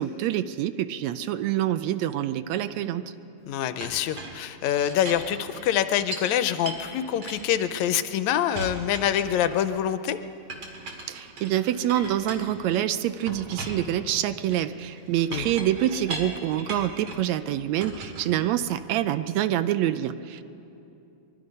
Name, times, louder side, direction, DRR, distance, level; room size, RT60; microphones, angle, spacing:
voice 1, 0.0-3.0 11.1-20.4, right 12 dB, 75° right, 12 dB, 1.8 m, -26 dB
voice 2, 3.5-10.2 15.3-15.5, left 10 dB, 75° left, 11 dB, 1.9 m, -25 dB
Chink clink, 3.8-6.3 6.7-8.1 8.5-9.8 10.5-12.8 13.3-17.3 17.8-19.0, right 2 dB, 55° right, 3.1 m, -39 dB
23.5 x 22.5 x 5.4 m, 2.7 s
omnidirectional pair, 3.4 m